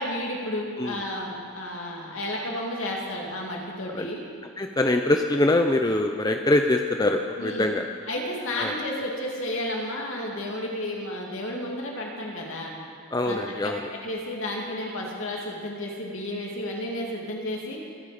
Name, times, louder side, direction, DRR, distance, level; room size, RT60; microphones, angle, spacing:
voice 1, 0.0-4.2 7.4-7.7 8.1-12.7 13.2-13.4 13.6-17.8, left 1 dB, 65° left, -1 dB, 2.6 m, -32 dB
voice 2, 4.6-7.9 8.5-8.7 13.1-13.9, left 2 dB, 15° left, 4 dB, 0.5 m, -23 dB
26.0 x 8.8 x 5.1 m, 2.4 s
head